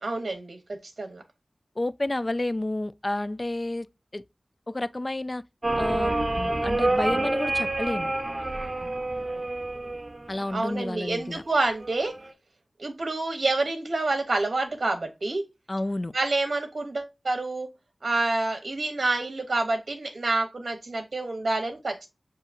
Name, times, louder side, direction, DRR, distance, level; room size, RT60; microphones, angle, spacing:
voice 1, 0.0-1.2 10.5-12.1 12.8-15.4 16.1-17.7 18.0-22.1, right 2 dB, 70° right, 0.8 m, -28 dB
voice 2, 1.8-3.9 4.1-4.2 4.7-5.4 5.8-8.1 10.3-11.4 15.7-16.1, left 1 dB, 40° left, 0.4 m, -30 dB
sound 1, 5.6-10.7 11.8-12.3, right 2 dB, 35° right, 1.0 m, -28 dB
6.9 x 2.8 x 2.4 m
wide cardioid pair, 45°, 0 cm